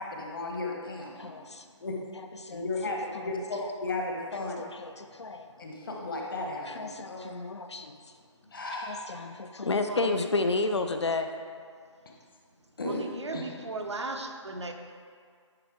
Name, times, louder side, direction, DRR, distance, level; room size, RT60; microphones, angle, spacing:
voice 1, 0.0-1.3 1.8-2.0 2.5-4.6 5.6-7.2 8.5-9.0 12.8-13.0 13.3-13.4, left 2 dB, 45° left, 0 dB, 1.1 m, -34 dB
voice 2, 1.1-1.7 2.1-3.7 4.3-5.7 6.6-8.2 8.8-11.3, left 3 dB, 60° left, 7 dB, 0.5 m, -33 dB
voice 3, 12.8-14.7, right 3 dB, 65° right, 4 dB, 0.7 m, -36 dB
10.5 x 4.1 x 3.5 m, 2.1 s
figure-of-eight pair, 145°, 16 cm